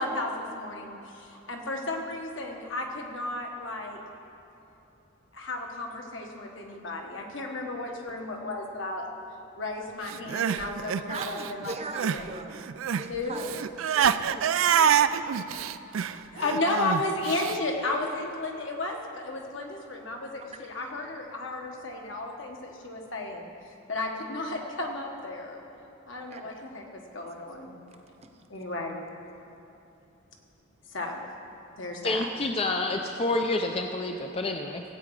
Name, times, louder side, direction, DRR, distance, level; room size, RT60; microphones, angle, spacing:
voice 1, 0.0-4.0 5.3-9.1 9.6-11.7 12.0-12.2 13.1-13.4 16.1-23.5 23.9-25.6 26.1-27.8 28.5-29.0 30.9-31.3 31.8-32.3, left 2 dB, 65° left, 1 dB, 1.5 m, -33 dB
Crying sobbing, 10.1-12.3 12.5-17.6, right 8 dB, 80° right, 0.4 m, -26 dB
voice 2, 11.1-12.7 13.0-13.5 13.9-15.7 16.4-16.6 26.3-26.6, right 3 dB, 30° right, 5 dB, 0.9 m, -40 dB
voice 3, 32.0-34.8, left 2 dB, 30° left, 4 dB, 0.5 m, -28 dB
16.5 x 8.6 x 4.9 m, 2.9 s
head